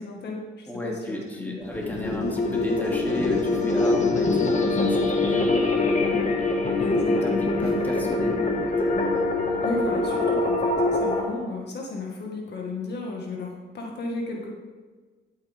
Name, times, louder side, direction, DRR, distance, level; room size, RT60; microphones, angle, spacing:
voice 1, 0.0-1.7 6.8-7.4 9.6-14.5, left 2 dB, 55° left, 0 dB, 2.0 m, -34 dB
voice 2, 0.7-6.3 6.6-6.8 7.2-8.9, left 1 dB, 10° left, -2 dB, 2.9 m, -34 dB
sound 1, 1.6-11.2, left 2 dB, 35° left, 1.9 m, -24 dB
12.5 x 9.2 x 3.7 m, 1.4 s
cardioid pair, 90°, 20 cm